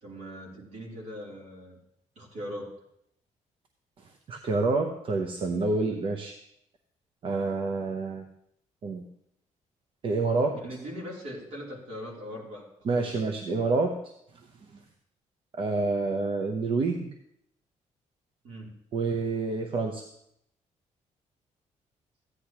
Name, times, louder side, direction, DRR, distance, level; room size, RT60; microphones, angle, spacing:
voice 1, 0.0-1.8 2.1-2.7 10.5-12.7 12.9-13.2 18.4-18.7, equal, 65° right, -2 dB, 3.0 m, -40 dB
voice 2, 4.3-6.3 7.2-8.2 8.8-9.0 10.0-10.6 12.8-14.0 15.5-17.1 18.9-20.0, right 3 dB, 45° right, 3 dB, 0.7 m, -27 dB
14.5 x 10.0 x 2.9 m, 0.76 s
cardioid pair, 165°, 13 cm